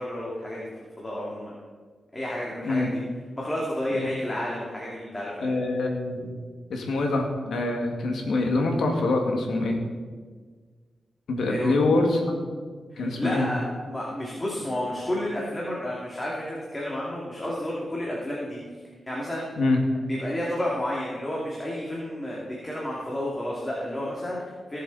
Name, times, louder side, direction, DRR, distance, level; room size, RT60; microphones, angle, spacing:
voice 1, 0.0-1.5 2.1-3.0 3.4-5.5 11.5-11.7 12.9-18.6 19.1-19.5 20.1-24.8, left 1 dB, 20° left, -5 dB, 2.8 m, -31 dB
voice 2, 5.4-6.3 6.7-9.8 11.3-12.4 13.0-13.5 19.6-19.8, left 2 dB, 85° left, 2 dB, 2.3 m, -25 dB
19.0 x 7.6 x 4.3 m, 1.5 s
cardioid pair, 85°, 0 cm